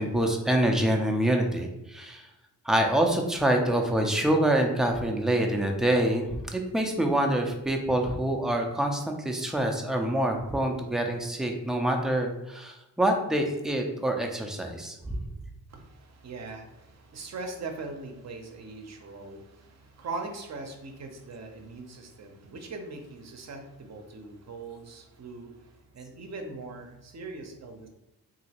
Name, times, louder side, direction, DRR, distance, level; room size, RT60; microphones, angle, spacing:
voice 1, 0.0-2.3 2.6-15.2, right 1 dB, ahead, 2 dB, 0.4 m, -26 dB
voice 2, 15.7-27.9, right 3 dB, 45° right, 4 dB, 0.6 m, -41 dB
3.0 x 2.6 x 2.8 m, 0.91 s
cardioid pair, 90°, 39 cm